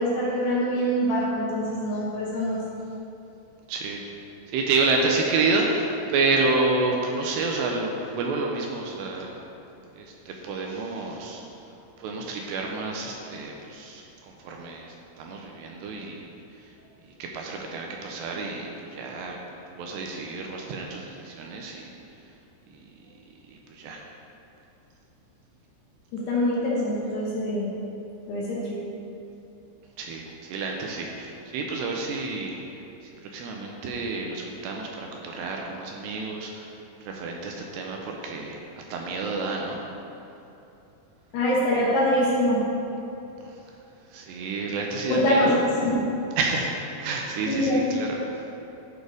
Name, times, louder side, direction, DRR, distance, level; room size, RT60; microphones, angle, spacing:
voice 1, 0.0-2.6 26.1-27.7 28.3-28.8 41.3-42.7 45.1-45.9 47.5-47.9, equal, 70° left, -6 dB, 3.0 m, -24 dB
voice 2, 3.7-4.0 4.5-9.3 10.0-11.4 12.0-14.0 14.4-16.2 17.2-19.4 19.7-21.9 22.7-22.8 23.5-24.0 30.0-32.6 33.2-36.7 37.1-38.6 38.9-39.8 43.5-43.6 44.1-45.6 46.4-46.7 47.0-48.6, right 3 dB, 80° right, 0 dB, 2.6 m, -29 dB
12.0 x 4.4 x 4.9 m, 2.9 s
omnidirectional pair, 5.3 m